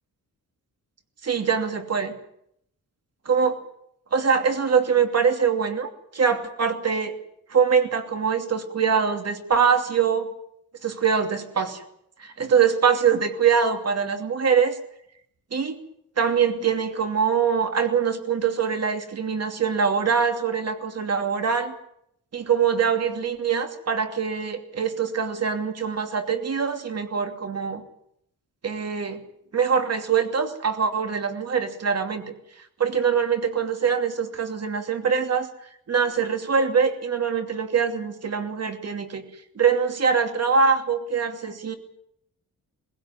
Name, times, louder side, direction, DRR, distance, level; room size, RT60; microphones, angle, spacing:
voice 1, 1.2-2.1 3.2-3.6 4.1-7.1 7.5-10.3 10.8-11.8 12.2-14.8 15.5-15.8 16.2-21.7 22.3-27.8 28.6-29.2 29.5-32.3 32.8-35.5 35.9-39.2 39.6-41.7, right 6 dB, 45° right, 6 dB, 2.7 m, -23 dB
20.5 x 16.5 x 9.5 m, 0.73 s
cardioid pair, 120°, 34 cm